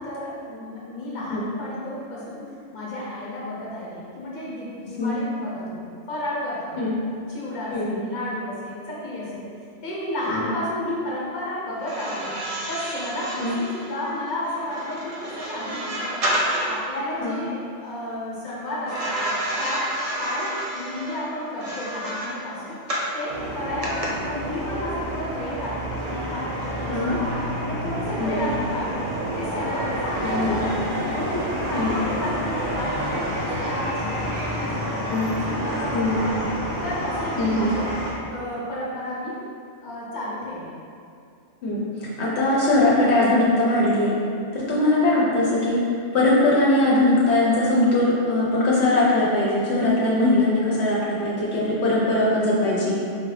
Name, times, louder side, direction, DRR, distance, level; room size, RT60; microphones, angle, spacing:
voice 1, 0.0-2.5 2.7-6.8 7.3-9.5 9.8-12.3 12.7-16.2 16.5-19.2 19.6-19.9 20.2-22.8 23.1-27.3 27.7-29.0 29.3-30.8 31.1-35.1 35.4-36.4 36.8-37.9 38.3-39.4 39.8-40.7, left 1 dB, 45° left, -6 dB, 0.9 m, -32 dB
voice 2, 7.7-8.0 10.3-10.5 13.4-13.6 17.2-17.4 26.9-27.2 28.2-28.5 30.2-30.7 31.7-32.0 35.1-35.3 35.9-36.2 37.4-37.7 41.6-41.8 42.2-44.1 44.5-45.8 46.1-53.0, left 2 dB, 70° left, -6 dB, 0.9 m, -21 dB
sound 1, 11.8-16.9 18.9-23.2 23.8-24.1, right 1 dB, 45° right, 0.5 m, -30 dB
sound 2, 23.3-38.1, equal, 85° right, 1.2 m, -29 dB
4.8 x 2.5 x 3.2 m, 2.4 s
omnidirectional pair, 1.2 m